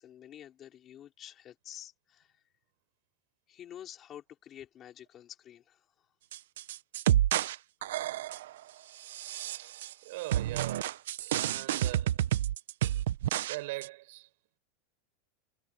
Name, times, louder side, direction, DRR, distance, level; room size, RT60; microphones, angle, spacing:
voice 1, 0.0-2.4 3.5-5.9, left 10 dB, 25° left, 4.7 m, -49 dB
sound 1, 6.3-7.6 7.8-8.5 9.1-9.9 10.3-13.6 13.8-13.9, right 12 dB, 80° right, 0.8 m, -30 dB
voice 2, 10.0-10.9 11.3-12.2 13.5-14.3, right 21 dB, 55° right, 7.5 m, -41 dB
supercardioid pair, 175°, 0 cm